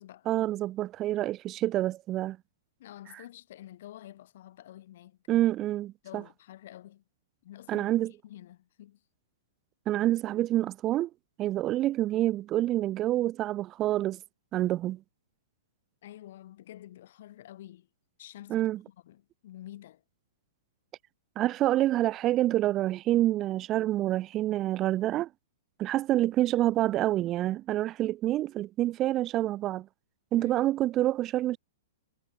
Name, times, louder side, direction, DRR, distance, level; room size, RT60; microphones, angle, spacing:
voice 1, 0.3-2.4 5.3-6.2 7.7-8.1 9.9-11.1 11.4-14.2 14.5-15.0 18.5-18.8 21.4-25.3 25.8-29.9 30.3-31.6, right 14 dB, 30° right, 0.3 m, -27 dB
voice 2, 2.8-5.2 6.0-7.0 7.4-9.0 16.0-17.9 18.2-20.0 30.3-30.7, left 13 dB, 60° left, 6.5 m, -49 dB
hypercardioid pair, 120°, 0 cm